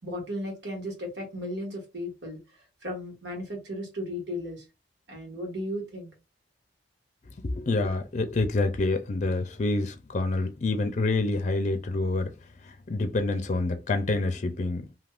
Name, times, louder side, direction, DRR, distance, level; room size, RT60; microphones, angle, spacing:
voice 1, 0.0-4.6 5.1-6.1, left 1 dB, 85° right, 1.7 m, -35 dB
voice 2, 7.4-12.3 12.6-14.9, left 2 dB, 45° left, 0.5 m, -27 dB
3.5 x 2.8 x 2.4 m
head